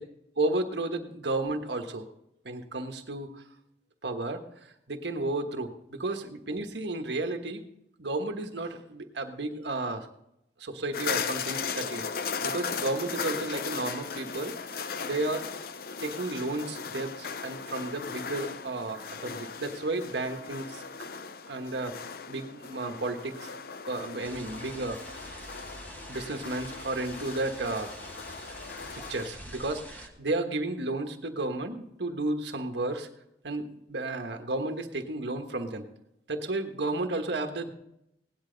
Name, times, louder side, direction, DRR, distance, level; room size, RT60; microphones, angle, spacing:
voice 1, 0.4-2.1 2.4-3.4 4.0-4.4 4.9-7.6 8.0-10.1 10.6-15.5 16.0-20.8 21.5-22.0 22.3-23.5 23.9-25.5 26.1-27.9 29.1-33.1 33.4-35.9 36.3-37.7, right 2 dB, 75° right, 6 dB, 1.3 m, -33 dB
sound 1, 10.9-29.3, left 6 dB, 55° left, 0.6 m, -37 dB
sound 2, 24.2-30.1, equal, 10° left, 1.5 m, -45 dB
17.5 x 10.5 x 3.9 m, 0.81 s
head